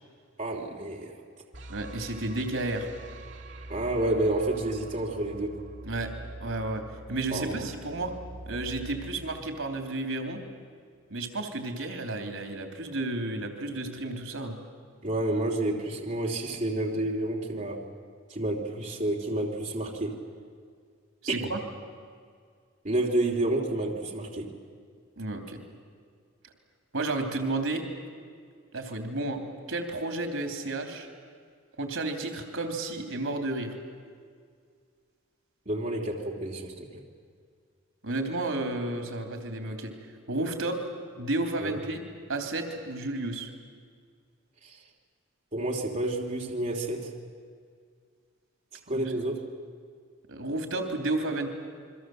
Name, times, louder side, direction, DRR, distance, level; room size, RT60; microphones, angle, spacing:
voice 1, 0.4-1.1 3.7-5.6 7.3-7.7 15.0-17.8 18.3-20.2 21.3-21.4 22.8-24.5 35.7-37.0 41.6-41.8 44.6-44.8 45.5-47.1 48.9-49.4, right 1 dB, 35° right, -1 dB, 3.0 m, -29 dB
sound 1, 1.5-10.6, right 2 dB, 60° right, 2.1 m, -45 dB
voice 2, 1.7-2.9 5.8-6.1 6.4-6.8 7.1-8.1 8.4-10.4 11.1-14.6 21.2-21.6 25.2-25.6 26.9-27.9 28.7-29.4 29.7-31.1 31.8-33.8 38.0-39.9 40.3-40.8 41.2-42.0 42.3-43.5 48.9-49.1 50.3-51.5, right 2 dB, 80° right, 5 dB, 3.3 m, -32 dB
28.5 x 23.0 x 7.8 m, 2.1 s
head